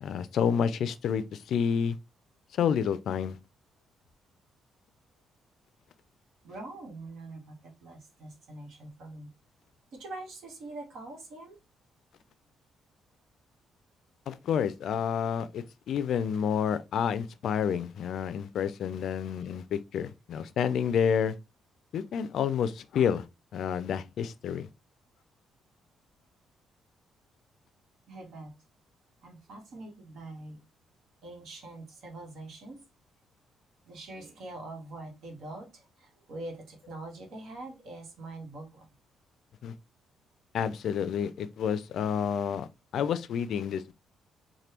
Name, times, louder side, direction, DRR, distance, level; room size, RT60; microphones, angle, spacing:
voice 1, 0.0-1.9 2.6-3.4 14.3-21.3 21.9-23.2 23.5-24.7 39.6-39.7 40.5-42.7 42.9-43.9, left 7 dB, 70° left, 0.3 m, -29 dB
voice 2, 6.4-9.3 9.9-11.6 28.1-28.5 29.2-30.6 31.2-32.8 33.9-38.9, right 2 dB, 75° right, 1.1 m, -44 dB
3.3 x 2.2 x 2.9 m
cardioid pair, 90°, 0 cm